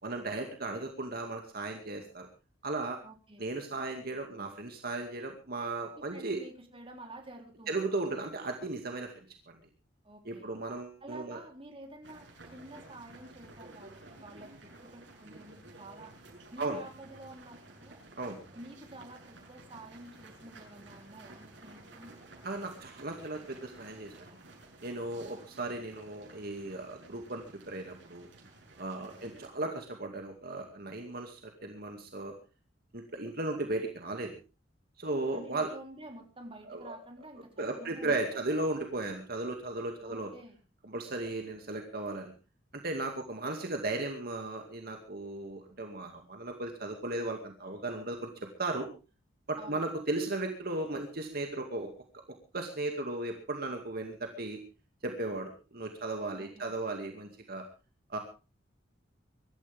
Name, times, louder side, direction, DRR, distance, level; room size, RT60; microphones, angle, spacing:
voice 1, 0.0-2.3 2.6-3.0 3.4-6.4 7.7-9.3 10.2-11.4 16.6-16.8 18.2-18.4 22.4-24.4 24.8-28.3 28.8-32.3 32.9-34.3 35.0-35.7 36.7-37.0 37.6-40.3 40.8-42.3 42.7-48.3 48.6-48.9 49.5-51.9 52.5-54.6 55.0-57.6 58.1-58.2, right 2 dB, 55° right, 3 dB, 2.3 m, -36 dB
voice 2, 3.0-3.5 5.9-7.8 10.0-10.5 11.0-16.1 16.5-18.0 18.5-22.3 25.1-25.5 29.0-29.4 35.3-38.4 40.0-40.6 49.6-49.9 56.3-56.7, right 1 dB, 30° right, 3 dB, 3.6 m, -50 dB
sound 1, 12.0-29.5, right 2 dB, 75° right, 7.1 m, -53 dB
24.0 x 13.5 x 3.6 m, 0.32 s
head